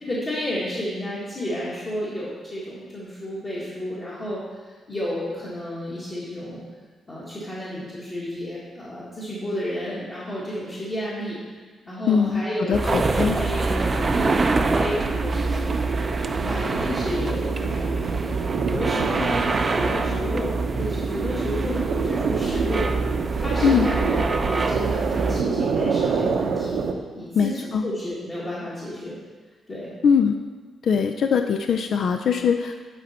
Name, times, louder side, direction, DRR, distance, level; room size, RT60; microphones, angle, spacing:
voice 1, 0.0-6.6 7.1-11.4 11.9-15.7 16.4-18.3 18.6-19.4 19.7-22.9 23.4-26.8 27.2-29.2 29.7-29.9, equal, 35° left, -9 dB, 1.8 m, -31 dB
voice 2, 12.1-12.4 12.7-13.4 23.6-23.9 27.3-27.8 30.0-30.4 30.8-32.8, left 6 dB, 65° left, 6 dB, 0.3 m, -21 dB
sound 1, 12.7-25.4, right 3 dB, 30° right, 0.4 m, -25 dB
sound 2, 14.9-26.9, right 5 dB, 80° right, 0.7 m, -27 dB
10.0 x 4.1 x 4.3 m, 1.4 s
cardioid pair, 110°, 0 cm